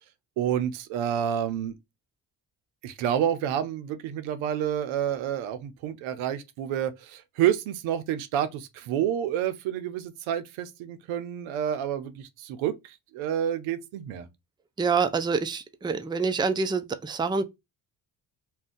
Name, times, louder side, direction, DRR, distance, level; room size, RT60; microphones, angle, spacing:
voice 1, 0.4-1.8 2.8-14.3, right 10 dB, 90° right, 0.6 m, -29 dB
voice 2, 14.8-17.4, right 5 dB, 10° right, 0.4 m, -26 dB
2.5 x 2.2 x 3.6 m
supercardioid pair, 55°, 47 cm